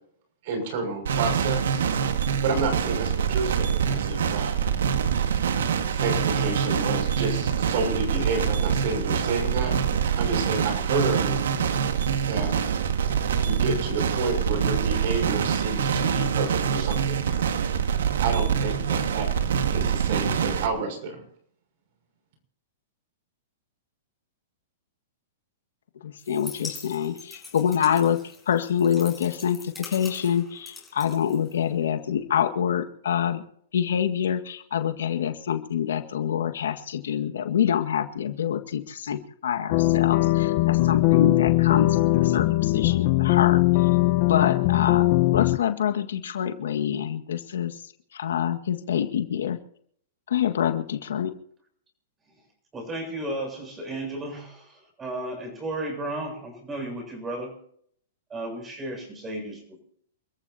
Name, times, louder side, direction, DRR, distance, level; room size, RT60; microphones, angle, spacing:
voice 1, 0.4-1.8 2.4-4.7 5.9-9.7 10.1-11.4 12.3-12.5 13.4-17.5 18.2-19.3 19.7-21.2, right 3 dB, 55° right, 5 dB, 6.3 m, -30 dB
sound 1, 1.1-20.7, right 7 dB, 80° right, 1.8 m, -25 dB
voice 2, 26.0-28.2 28.5-33.4 33.7-43.6 44.2-45.1 45.3-47.8 48.1-49.6 50.3-51.3, left 9 dB, 80° left, 7 dB, 1.8 m, -26 dB
sound 2, 26.2-31.9, left 4 dB, 5° left, 6.5 m, -43 dB
sound 3, 39.7-45.6, left 18 dB, 45° left, 0.9 m, -20 dB
voice 3, 52.7-57.6 58.3-59.8, right 1 dB, 15° right, 4 dB, 7.3 m, -34 dB
29.0 x 14.5 x 2.8 m, 0.65 s
hypercardioid pair, 140°, 0 cm